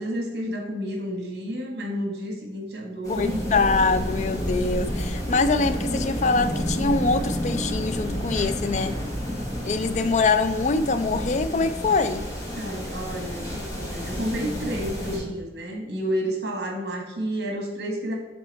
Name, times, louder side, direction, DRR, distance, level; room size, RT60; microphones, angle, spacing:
voice 1, 0.0-3.5 12.6-18.1, equal, 70° right, 1 dB, 1.4 m, -30 dB
sound 1, 3.0-15.2, equal, 20° left, 1.3 m, -30 dB
voice 2, 3.1-9.0 9.6-12.3, left 3 dB, 40° left, 11 dB, 0.4 m, -24 dB
7.0 x 3.7 x 4.0 m, 1.2 s
head